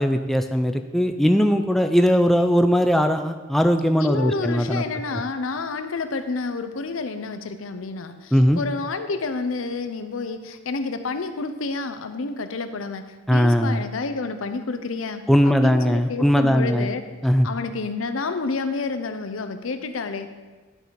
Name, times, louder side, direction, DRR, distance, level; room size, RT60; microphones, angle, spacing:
voice 1, 0.0-4.8 5.1-5.2 8.3-8.6 13.3-13.8 15.3-16.9 17.2-17.5, equal, ahead, 6 dB, 0.3 m, -19 dB
voice 2, 4.0-17.0 17.4-20.3, left 4 dB, 80° left, 9 dB, 0.6 m, -29 dB
10.5 x 4.6 x 5.2 m, 1.3 s
head